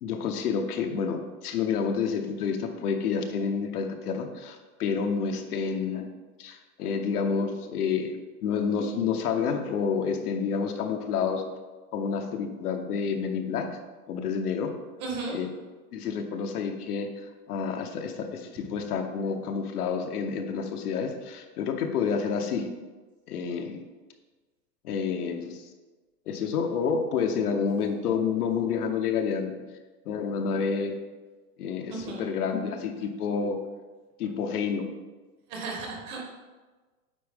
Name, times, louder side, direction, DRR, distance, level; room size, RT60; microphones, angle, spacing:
voice 1, 0.0-6.1 6.4-11.5 11.9-13.7 14.1-14.7 15.3-15.5 15.9-17.1 17.5-22.7 23.3-23.8 24.8-25.7 26.3-29.5 30.0-30.9 31.6-33.6 34.2-34.9, left 6 dB, 75° left, 5 dB, 1.0 m, -29 dB
voice 2, 15.0-15.4 31.9-32.2 35.5-36.2, right 3 dB, 25° right, 0 dB, 0.9 m, -34 dB
8.7 x 4.4 x 3.5 m, 1.3 s
supercardioid pair, 165°, 46 cm